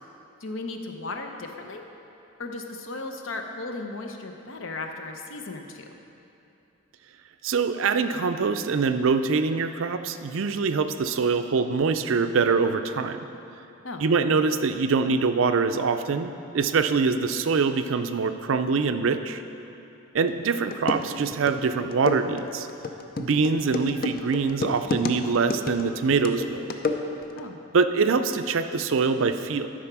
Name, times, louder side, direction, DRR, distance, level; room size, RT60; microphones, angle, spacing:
voice 1, 0.4-1.8 2.4-5.8 13.8-14.1 27.4-27.6, left 2 dB, 70° left, 4 dB, 0.8 m, -36 dB
voice 2, 7.4-13.2 14.0-19.4 20.1-22.7 23.2-26.7 27.7-29.7, right 4 dB, 70° right, 9 dB, 0.4 m, -24 dB
sound 1, 20.3-20.4 20.7-27.4, left 3 dB, 45° left, 0.5 m, -31 dB
12.0 x 4.8 x 6.0 m, 2.8 s
head